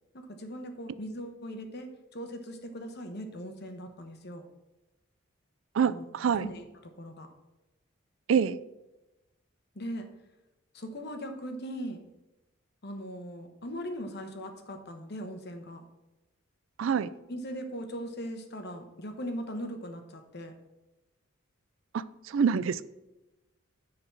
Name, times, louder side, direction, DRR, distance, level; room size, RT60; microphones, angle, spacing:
voice 1, 0.1-4.4 5.9-6.0 6.4-7.3 9.7-10.1 10.7-12.0 12.8-15.8 17.3-20.5, equal, 50° left, 6 dB, 1.1 m, -39 dB
voice 2, 5.7-6.5 8.3-8.6 16.8-17.1 21.9-22.8, right 7 dB, 70° right, 17 dB, 0.3 m, -26 dB
10.0 x 4.0 x 5.9 m, 0.99 s
head